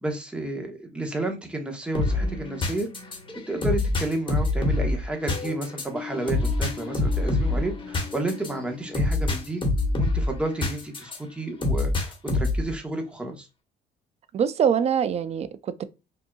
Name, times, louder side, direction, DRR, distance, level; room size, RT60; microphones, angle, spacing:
voice 1, 0.0-2.9 3.5-9.6 10.0-13.5, right 2 dB, 5° right, 1.1 m, -31 dB
sound 1, 1.9-11.2 11.6-12.7, left 2 dB, 30° left, 1.4 m, -26 dB
voice 2, 14.3-15.8, right 8 dB, 40° right, 0.4 m, -24 dB
5.3 x 2.8 x 2.3 m
cardioid pair, 110°, 17 cm